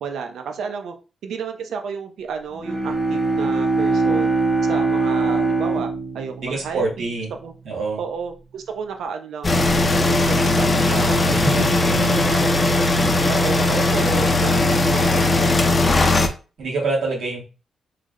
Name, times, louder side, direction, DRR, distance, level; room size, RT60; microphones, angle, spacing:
voice 1, 0.0-0.9 1.2-4.3 4.7-7.1 7.4-7.5 8.0-11.6 12.3-15.5, right 6 dB, 85° right, 5 dB, 0.5 m, -32 dB
Bowed string instrument, 2.5-7.4, right 3 dB, 30° right, 0.7 m, -22 dB
voice 2, 6.4-7.3 7.6-8.0 11.0-12.3 16.6-17.4, right 3 dB, 60° right, -2 dB, 1.2 m, -26 dB
sound 1, 9.4-16.3, left 2 dB, 20° left, 0.4 m, -18 dB
3.2 x 2.1 x 3.6 m, 0.33 s
wide cardioid pair, 165°, 0 cm